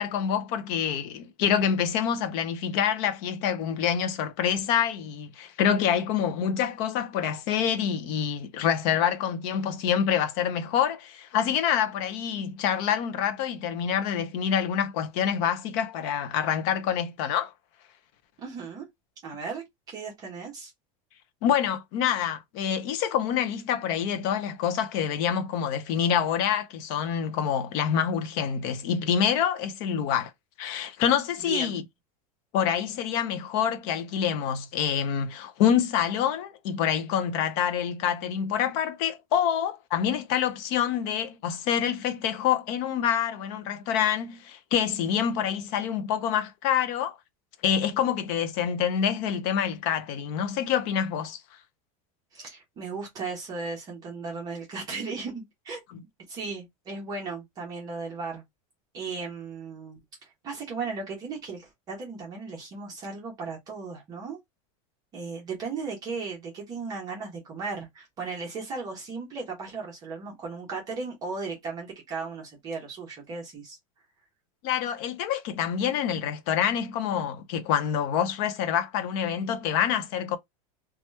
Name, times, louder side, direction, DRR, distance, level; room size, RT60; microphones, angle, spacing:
voice 1, 0.0-17.5 21.4-30.3 30.6-31.8 32.5-47.2 47.6-51.4 74.6-80.4, left 8 dB, 35° left, 0.5 m, -26 dB
voice 2, 18.4-18.9 19.2-20.7 31.5-31.8 52.3-58.4 58.9-60.0 60.4-64.4 65.1-73.8, right 4 dB, 20° right, 0.9 m, -36 dB
2.9 x 2.3 x 3.1 m
supercardioid pair, 180°, 18 cm